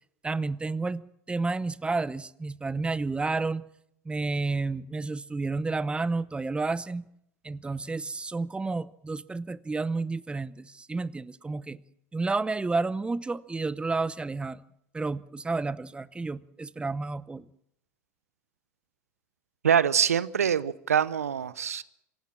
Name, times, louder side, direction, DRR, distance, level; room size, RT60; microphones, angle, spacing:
voice 1, 0.2-3.7 4.1-7.0 7.4-11.8 12.1-14.6 14.9-17.4, right 3 dB, 15° right, 19 dB, 0.8 m, -31 dB
voice 2, 19.6-21.8, right 8 dB, 85° right, 18 dB, 0.8 m, -24 dB
26.0 x 16.5 x 7.4 m, 0.75 s
hypercardioid pair, 80°, 8 cm